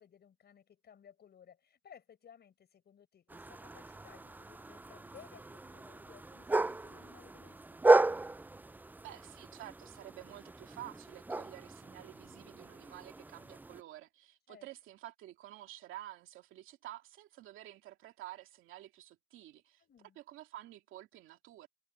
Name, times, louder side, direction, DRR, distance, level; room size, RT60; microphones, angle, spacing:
voice 1, 0.0-7.6 7.8-8.0 14.5-14.7 19.8-20.2, left 8 dB, 55° left, 4.9 m, -59 dB
sound 1, 3.3-13.8, right 2 dB, 10° right, 0.3 m, -34 dB
voice 2, 9.0-19.8 20.2-21.7, right 14 dB, 90° right, 2.5 m, -50 dB
cardioid pair, 90°, 20 cm